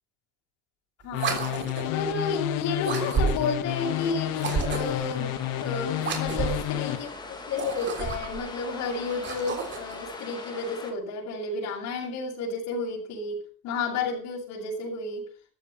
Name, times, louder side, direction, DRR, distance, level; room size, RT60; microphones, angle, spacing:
voice 1, 1.0-4.4 4.6-15.3, left 4 dB, 60° left, -5 dB, 7.1 m, -32 dB
sound 1, 1.1-7.0, left 14 dB, 80° left, 1.8 m, -30 dB
sound 2, 1.1-2.0 2.8-3.6 4.3-5.1 6.0-6.7 7.5-8.4 9.1-10.0, right 6 dB, 35° right, 3.5 m, -31 dB
sound 3, 3.7-10.9, left 3 dB, 15° left, 3.3 m, -41 dB
14.5 x 13.0 x 5.9 m, 0.43 s
cardioid pair, 175°, 32 cm